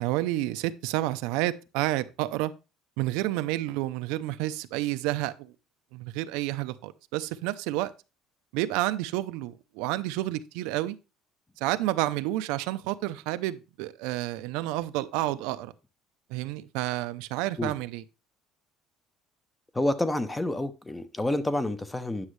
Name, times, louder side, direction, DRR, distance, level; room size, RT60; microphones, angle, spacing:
voice 1, 0.0-2.5 3.0-5.5 5.9-7.9 8.5-11.0 11.6-15.7 16.3-18.0, right 16 dB, 85° right, 0.6 m, -30 dB
voice 2, 19.7-22.3, left 1 dB, 10° left, 0.6 m, -28 dB
9.7 x 6.3 x 3.2 m
cardioid pair, 150°, 0 cm